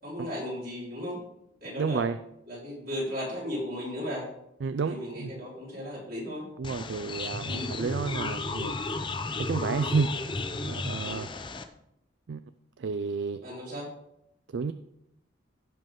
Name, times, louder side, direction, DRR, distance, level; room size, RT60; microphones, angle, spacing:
voice 1, 0.0-1.2 1.6-2.0 2.5-4.3 4.9-6.5 7.4-7.7 11.0-11.3 13.4-13.9, left 1 dB, 50° right, -6 dB, 4.3 m, -36 dB
voice 2, 1.8-2.2 4.6-5.3 6.6-8.8 9.4-10.3 10.6-11.3 12.3-12.4 12.8-13.4 14.5-14.7, right 5 dB, 70° right, 11 dB, 0.4 m, -31 dB
sound 1, 6.6-11.6, left 3 dB, 25° left, 0.6 m, -33 dB
16.0 x 5.4 x 3.7 m, 0.81 s
head